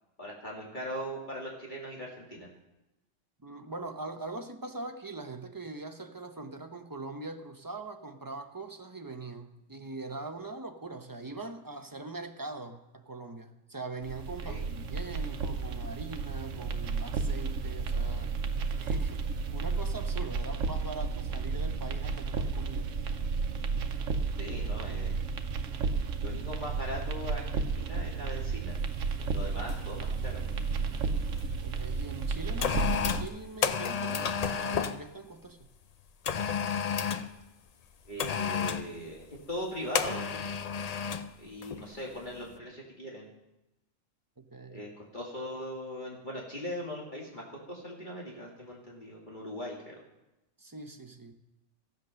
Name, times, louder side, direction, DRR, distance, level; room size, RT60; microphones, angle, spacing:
voice 1, 0.2-2.5 14.4-14.6 24.4-25.1 26.2-28.8 29.3-30.4 38.1-40.4 41.4-43.2 44.7-49.9, equal, 40° left, -4 dB, 2.4 m, -40 dB
voice 2, 3.4-18.4 18.8-19.2 19.5-23.0 31.6-35.6 44.4-44.9 50.6-51.3, right 3 dB, 20° right, 5 dB, 0.7 m, -42 dB
sound 1, 14.0-33.2, right 4 dB, 80° right, 1.2 m, -32 dB
sound 2, 28.8-29.0 29.7-30.0 30.2-31.4 32.1-35.0 36.2-37.3 38.2-38.9 39.9-41.3 41.6-41.8, left 7 dB, 55° left, 0.4 m, -31 dB
15.0 x 8.3 x 6.3 m, 0.96 s
omnidirectional pair, 1.3 m